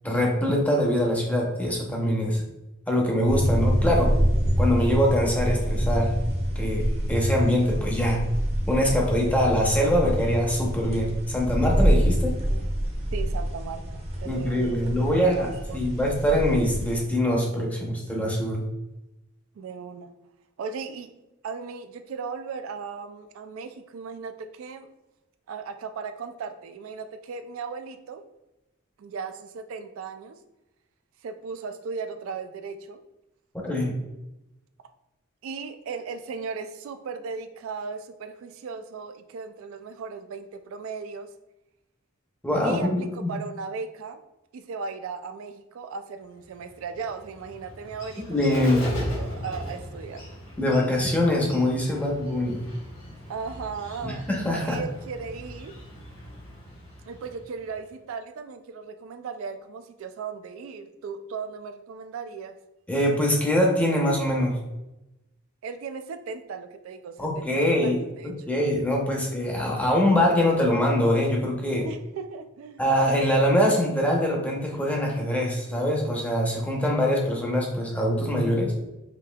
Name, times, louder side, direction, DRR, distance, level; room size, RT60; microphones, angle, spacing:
voice 1, 0.0-2.4 2.9-4.1 4.6-6.1 6.6-8.2 8.7-12.4 14.2-18.6 33.6-33.9 42.4-43.3 48.3-48.9 50.6-52.6 54.0-54.8 62.9-64.6 67.2-68.0 68.2-71.9 72.8-78.7, left 1 dB, 5° left, -1 dB, 0.7 m, -23 dB
sound 1, 3.3-17.0, equal, 30° right, 0.8 m, -26 dB
voice 2, 12.5-16.1 19.6-20.1 20.6-21.1 21.4-24.9 25.5-28.2 29.0-30.4 31.2-33.0 35.4-41.3 42.6-44.2 44.5-50.2 53.3-54.3 54.6-55.7 57.0-62.6 65.6-68.3 71.8-72.8, right 5 dB, 70° right, 8 dB, 0.3 m, -37 dB
Bird, 46.4-57.9, left 1 dB, 70° left, 1.4 m, -39 dB
5.0 x 2.8 x 2.2 m, 0.95 s
head